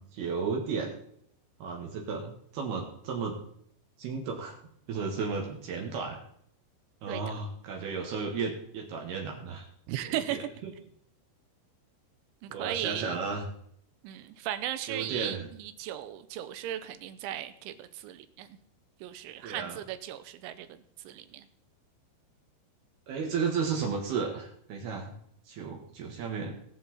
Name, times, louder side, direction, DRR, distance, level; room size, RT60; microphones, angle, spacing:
voice 1, 0.1-1.0 1.6-3.4 4.0-4.6 4.9-6.2 7.0-9.7 10.0-10.7 12.5-13.5 14.9-15.5 19.4-19.8 23.1-25.1 25.5-26.5, right 5 dB, 65° right, 1 dB, 3.1 m, -34 dB
voice 2, 9.9-10.5 12.4-13.2 14.0-18.5 19.0-21.5, right 12 dB, 80° right, 11 dB, 3.0 m, -36 dB
20.5 x 7.2 x 4.2 m, 0.67 s
omnidirectional pair, 5.7 m